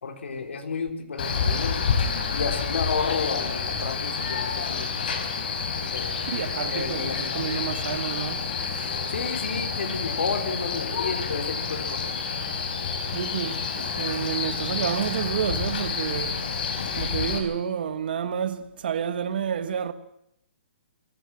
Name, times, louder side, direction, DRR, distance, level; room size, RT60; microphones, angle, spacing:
voice 1, 0.0-1.8 2.3-5.2 5.8-6.1 6.7-7.5 9.1-12.2, left 5 dB, 75° left, 4.0 m, -31 dB
Male speech man speaking, 1.2-17.4, left 5 dB, 45° left, 4.6 m, -29 dB
voice 2, 6.3-8.5 13.1-16.6 17.0-19.9, right 8 dB, 50° right, 1.6 m, -29 dB
23.5 x 16.5 x 7.5 m
hypercardioid pair, 170°, 7 cm